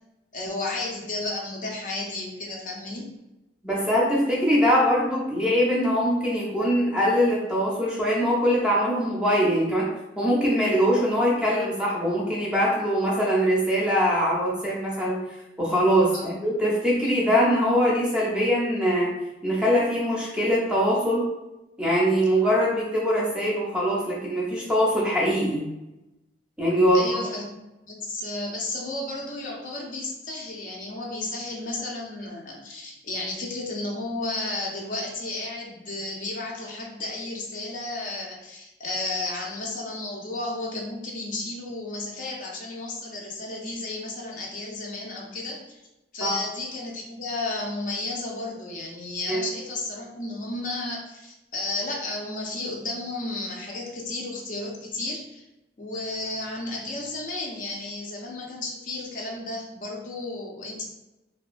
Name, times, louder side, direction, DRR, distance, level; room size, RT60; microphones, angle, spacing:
voice 1, 0.3-3.1 16.1-16.4 16.9-17.1 26.9-27.5 27.8-45.8 46.1-55.4 55.8-60.8, left 2 dB, 50° left, -2 dB, 0.5 m, -33 dB
voice 2, 3.6-9.9 10.2-15.2 15.6-19.1 19.4-21.3 21.8-25.6 26.6-27.0 46.2-46.3 49.3-49.4, equal, 5° right, -5 dB, 0.6 m, -22 dB
2.8 x 2.2 x 2.4 m, 0.96 s
head